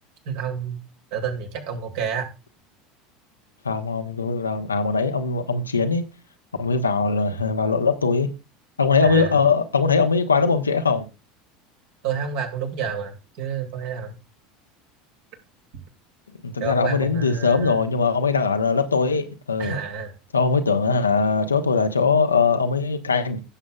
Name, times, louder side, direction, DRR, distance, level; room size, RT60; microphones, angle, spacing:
voice 1, 0.3-0.8 1.1-2.3 9.0-9.3 12.0-14.1 16.6-17.8 19.6-20.1, right 6 dB, 55° right, 2.4 m, -29 dB
voice 2, 3.6-6.0 6.6-8.3 8.8-11.0 16.4-19.7 20.3-23.4, left 4 dB, 80° left, 1.0 m, -21 dB
16.5 x 7.4 x 2.4 m
figure-of-eight pair, 75°, 0 cm